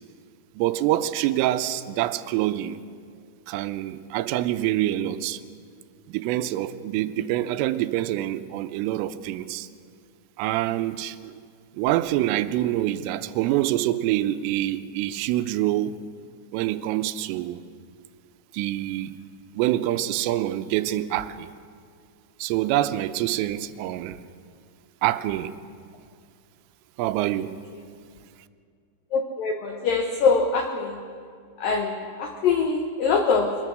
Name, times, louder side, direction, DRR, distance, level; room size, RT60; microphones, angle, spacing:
voice 1, 0.6-2.8 3.5-5.4 6.1-9.7 10.4-11.4 11.7-16.0 16.5-17.6 18.5-19.1 19.5-21.5 22.4-24.2 25.0-25.5 27.0-27.5, right 14 dB, 90° right, 12 dB, 3.3 m, -26 dB
voice 2, 29.1-31.0 31.6-33.6, left 4 dB, 80° left, 5 dB, 2.0 m, -23 dB
22.5 x 21.5 x 6.4 m, 2.2 s
omnidirectional pair, 5.7 m